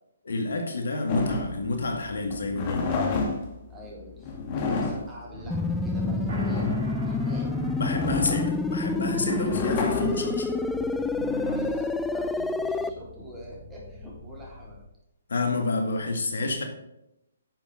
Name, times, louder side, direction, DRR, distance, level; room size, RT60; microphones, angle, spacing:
voice 1, 0.3-3.0 7.8-10.5 15.3-16.6, left 2 dB, 70° left, 4 dB, 2.1 m, -29 dB
sound 1, 1.1-12.4, left 3 dB, 35° left, 2.2 m, -31 dB
voice 2, 3.7-7.6 11.1-14.8, equal, 10° right, -4 dB, 4.1 m, -44 dB
sound 2, 5.3-14.8, equal, 45° right, 4.6 m, -40 dB
sound 3, 5.5-12.9, left 3 dB, 5° left, 0.5 m, -28 dB
10.5 x 7.2 x 5.0 m, 0.83 s
figure-of-eight pair, 135°, 0 cm